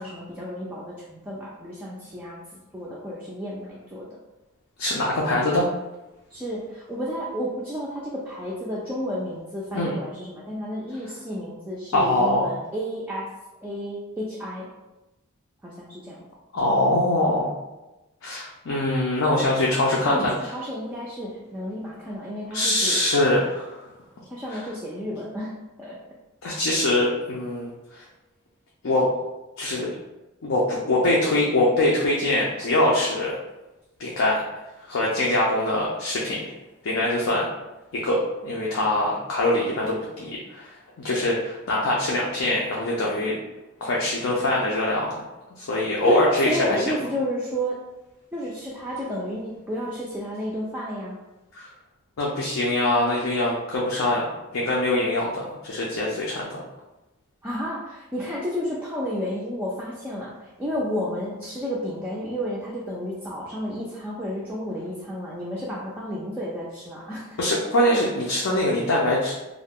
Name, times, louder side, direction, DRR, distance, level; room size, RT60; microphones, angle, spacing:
voice 1, 0.0-2.4 2.7-4.1 6.3-13.3 13.6-14.7 15.6-16.2 20.0-23.0 24.3-26.0 46.1-47.8 48.3-51.2 57.4-67.4, equal, 10° right, -6 dB, 0.3 m, -31 dB
voice 2, 4.8-5.7 9.7-9.9 11.9-12.5 16.5-17.5 18.2-20.3 22.5-23.8 26.4-28.0 28.8-29.1 29.6-29.9 30.4-33.4 34.0-34.4 34.9-36.5 36.8-37.5 37.9-40.7 41.0-43.4 43.8-45.1 45.6-46.8 51.5-51.7 52.2-56.6 67.4-69.3, left 1 dB, 75° left, -4 dB, 0.5 m, -23 dB
2.4 x 2.1 x 3.5 m, 1.0 s
head